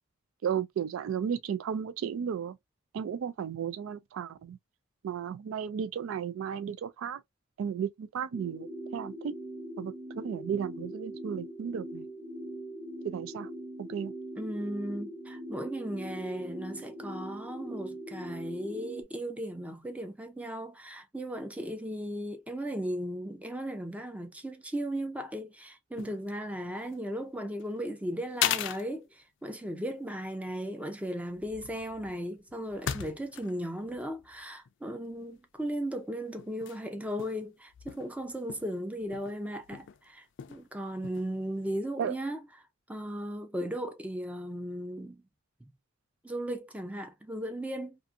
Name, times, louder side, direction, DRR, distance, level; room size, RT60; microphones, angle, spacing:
voice 1, 0.4-2.6 2.9-4.6 5.0-7.2 7.6-9.3 9.8-12.1 13.0-13.5 13.8-14.1 42.0-42.1, right 8 dB, 90° right, 0.3 m, -34 dB
sound 1, 8.3-19.0, right 1 dB, 70° right, 1.1 m, -41 dB
voice 2, 14.4-42.4 42.9-45.2 46.2-48.0, equal, 5° right, 0.5 m, -36 dB
steps on wooden floor moving, 26.0-26.3 26.6-27.1 27.6-27.7 28.4-28.9 29.5-29.7 30.1-30.2 31.3-33.6 33.9-35.1 35.6-35.8 36.4-36.8 37.1-37.5 37.7-40.0 40.4-40.7 40.9-41.3, left 10 dB, 65° left, 0.4 m, -37 dB
2.5 x 2.5 x 2.4 m
head